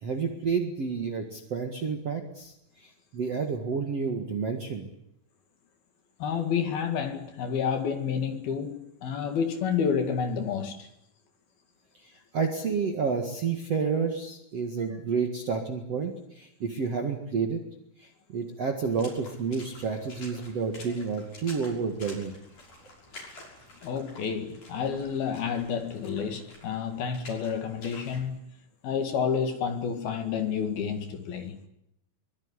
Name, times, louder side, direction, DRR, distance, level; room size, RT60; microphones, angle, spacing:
voice 1, 0.0-4.9 12.0-17.6 18.0-22.4, right 5 dB, 50° right, 2.1 m, -30 dB
voice 2, 6.2-10.9 23.8-28.4 28.8-31.6, left 7 dB, 60° left, 3.7 m, -29 dB
Water / Splash splatter, 18.8-28.2, left 2 dB, 40° left, 7.4 m, -49 dB
23.5 x 22.0 x 9.9 m
omnidirectional pair, 5.4 m